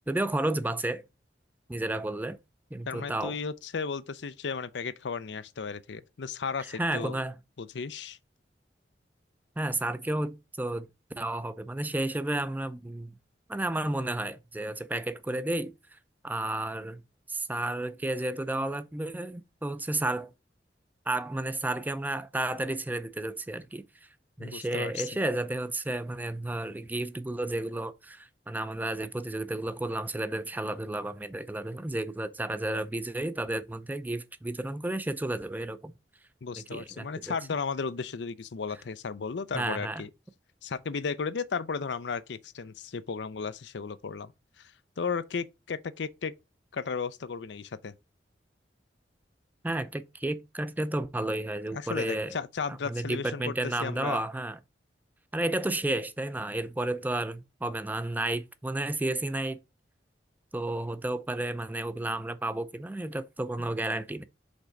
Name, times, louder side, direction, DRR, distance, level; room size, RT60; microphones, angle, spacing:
voice 1, 0.1-1.0 1.7-2.4 2.7-3.4 6.8-7.4 9.6-10.9 11.2-13.1 13.5-15.7 16.2-17.0 17.3-20.3 21.1-23.8 24.4-35.9 36.7-37.4 39.5-40.1 49.6-52.4 52.7-54.6 55.3-59.6 60.5-64.2, right 1 dB, 10° right, 0.4 m, -32 dB
voice 2, 2.9-7.2 7.6-8.2 24.4-25.1 36.4-40.1 40.6-44.3 44.6-44.7 45.0-46.3 46.7-47.9 51.7-53.5 53.8-54.2, left 5 dB, 90° left, 0.5 m, -34 dB
5.4 x 3.8 x 4.6 m
head